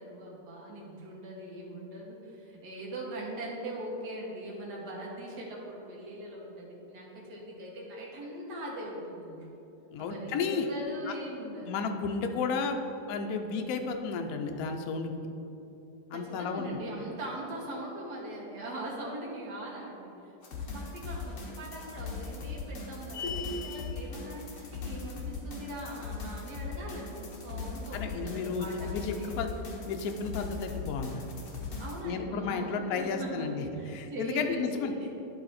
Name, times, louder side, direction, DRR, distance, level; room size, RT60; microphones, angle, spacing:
voice 1, 0.0-9.5 10.0-11.8 16.1-20.1 20.5-29.4 31.8-35.1, right 1 dB, 75° right, -3 dB, 1.8 m, -41 dB
voice 2, 9.9-10.7 11.1-11.2 11.6-12.8 13.1-15.1 16.1-16.7 27.9-29.5 29.8-31.3 32.0-33.6 33.9-34.9, left 5 dB, 65° left, 5 dB, 1.0 m, -32 dB
sound 1, 20.4-32.0, left 4 dB, 50° left, 1.3 m, -39 dB
sound 2, 23.1-24.0, left 3 dB, 85° left, 1.3 m, -36 dB
10.5 x 3.9 x 4.2 m, 2.9 s
omnidirectional pair, 1.8 m